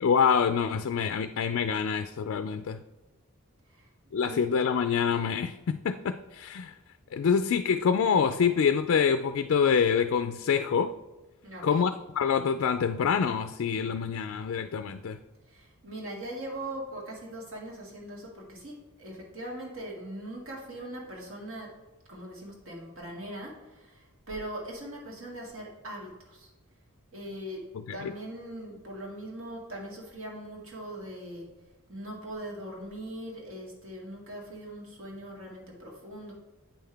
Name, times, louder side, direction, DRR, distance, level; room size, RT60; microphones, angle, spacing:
voice 1, 0.0-2.8 4.1-6.7 7.1-10.9 11.6-15.2 28.0-28.1, left 6 dB, 60° left, 9 dB, 0.3 m, -26 dB
voice 2, 11.4-11.9 15.5-21.7 22.1-26.5 27.1-27.6 27.9-31.5 31.9-36.3, right 1 dB, 60° right, -3 dB, 2.1 m, -41 dB
8.7 x 5.6 x 3.4 m, 1.2 s
head